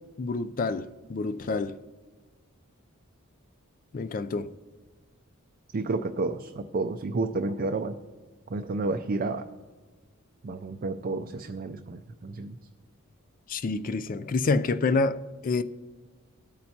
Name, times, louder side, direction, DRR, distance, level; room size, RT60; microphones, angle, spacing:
voice 1, 0.2-1.8 3.9-4.5 13.5-15.6, left 3 dB, 40° left, 0.4 m, -28 dB
voice 2, 5.7-8.0 8.5-9.5 10.4-12.6, right 3 dB, 45° right, 0.4 m, -30 dB
20.0 x 8.7 x 2.8 m
head